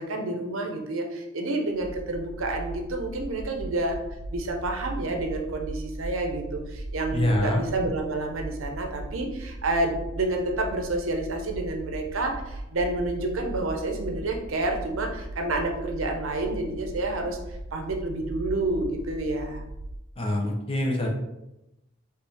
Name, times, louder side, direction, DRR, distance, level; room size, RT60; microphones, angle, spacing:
voice 1, 0.0-4.0 4.3-17.4 17.7-19.7, right 2 dB, 90° right, 3 dB, 0.8 m, -29 dB
sound 1, 1.7-20.0, right 1 dB, 50° right, 0.4 m, -38 dB
voice 2, 7.1-7.6 20.2-21.1, left 1 dB, 25° left, 1 dB, 0.7 m, -25 dB
4.7 x 3.3 x 3.4 m, 0.92 s
head